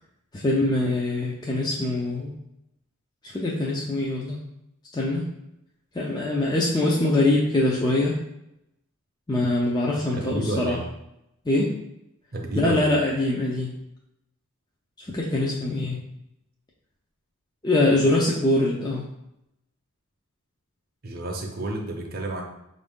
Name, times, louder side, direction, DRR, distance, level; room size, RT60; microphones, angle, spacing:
voice 1, 0.3-2.3 3.2-4.4 4.9-5.3 5.9-8.2 9.3-10.8 11.5-11.7 12.5-13.7 15.1-16.0 17.6-19.0, left 2 dB, 20° left, -4 dB, 0.4 m, -23 dB
voice 2, 10.1-10.8 12.3-13.0 21.0-22.4, right 1 dB, 40° right, 2 dB, 0.7 m, -30 dB
5.4 x 2.6 x 3.5 m, 0.83 s
head